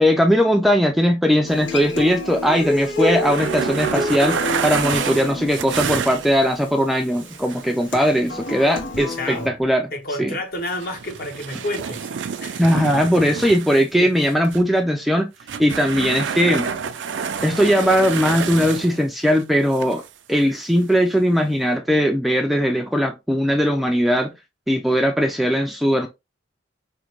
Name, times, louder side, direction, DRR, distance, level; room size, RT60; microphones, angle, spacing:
voice 1, 0.0-9.9 10.2-10.3 12.6-15.3 15.6-16.7 17.4-20.0 20.3-24.3 24.7-26.1, equal, ahead, 0.4 m, -19 dB
Human voice / Acoustic guitar, 1.5-9.5, left 1 dB, 85° left, 1.0 m, -28 dB
sound 1, 3.2-6.6 7.1-8.7 10.6-13.9 14.2-14.7 15.4-19.0 19.3-19.4 19.7-20.1 20.4-20.6 21.5-21.6, right 6 dB, 75° right, 0.4 m, -28 dB
voice 2, 9.1-9.5 9.9-12.1 12.4-12.7 13.8-14.1, left 1 dB, 55° left, 1.2 m, -30 dB
5.0 x 2.1 x 3.0 m
head